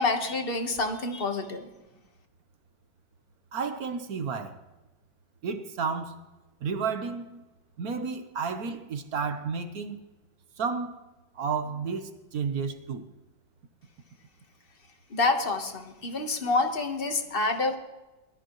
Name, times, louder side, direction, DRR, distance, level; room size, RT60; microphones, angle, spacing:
voice 1, 0.0-1.7 15.1-17.8, left 3 dB, 35° left, 1.2 m, -27 dB
voice 2, 3.5-4.6 5.4-6.2 6.6-7.4 7.8-10.0 10.6-11.0 11.3-13.0, right 5 dB, 55° right, 1.3 m, -32 dB
21.5 x 13.0 x 3.0 m
omnidirectional pair, 2.2 m